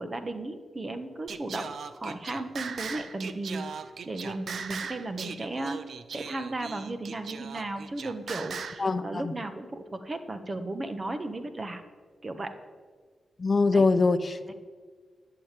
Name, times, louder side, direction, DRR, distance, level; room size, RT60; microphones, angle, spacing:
voice 1, 0.0-3.6 4.0-5.8 6.1-11.8 12.2-12.5 13.7-13.8 14.5-14.6, right 2 dB, 35° right, 8 dB, 1.4 m, -35 dB
Singing, 1.3-8.9, right 6 dB, 70° right, 0.7 m, -39 dB
voice 2, 8.8-9.3 13.4-14.5, left 3 dB, 40° left, 9 dB, 0.8 m, -24 dB
11.5 x 7.1 x 9.2 m, 1.5 s
cardioid pair, 65°, 0 cm